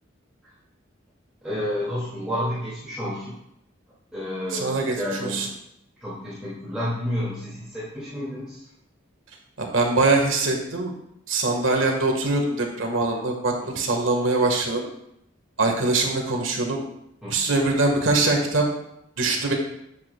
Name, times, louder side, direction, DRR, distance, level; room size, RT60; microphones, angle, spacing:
voice 1, 1.4-3.3 4.1-5.4 6.0-8.7 13.6-13.7 15.6-15.7 17.2-17.5, equal, 5° right, -11 dB, 2.0 m, -30 dB
voice 2, 4.5-4.9 5.2-5.5 9.6-10.9 11.3-14.8 15.6-16.8 17.3-18.7 19.2-19.5, right 2 dB, 75° right, 1 dB, 1.4 m, -23 dB
8.7 x 7.3 x 2.2 m, 0.79 s
head